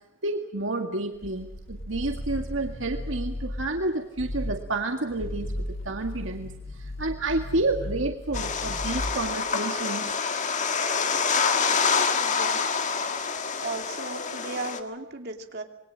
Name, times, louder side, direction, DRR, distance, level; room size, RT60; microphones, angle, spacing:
voice 1, 0.2-6.5 6.8-10.1, right 2 dB, 70° right, 4 dB, 1.9 m, -30 dB
sound 1, 1.1-3.8 4.2-4.7 5.1-9.4, left 1 dB, 75° left, 3.5 m, -35 dB
sound 2, 8.3-14.8, left 5 dB, 35° left, 1.9 m, -26 dB
voice 2, 12.2-12.7 13.6-15.6, right 3 dB, 55° right, 4 dB, 2.8 m, -36 dB
27.0 x 21.5 x 7.5 m, 0.87 s
head